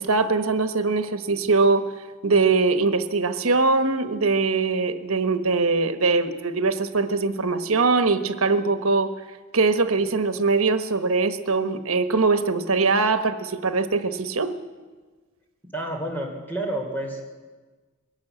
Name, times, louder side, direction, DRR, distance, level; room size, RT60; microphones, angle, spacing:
voice 1, 0.0-1.8 2.2-9.1 9.5-14.5, right 3 dB, 80° right, 9 dB, 1.2 m, -22 dB
voice 2, 15.7-17.3, right 1 dB, 10° left, 1 dB, 3.3 m, -30 dB
21.5 x 17.5 x 8.2 m, 1.4 s
head